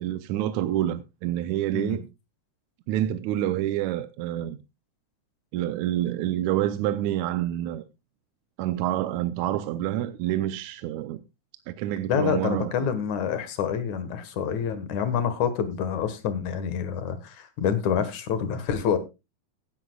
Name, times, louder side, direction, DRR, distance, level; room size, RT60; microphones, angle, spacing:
voice 1, 0.0-2.1 2.9-4.6 5.5-7.8 8.6-11.2 11.7-12.9, right 13 dB, 75° right, 2.0 m, -27 dB
voice 2, 12.1-19.0, left 7 dB, 75° left, 2.8 m, -27 dB
16.0 x 11.0 x 2.3 m
omnidirectional pair, 3.5 m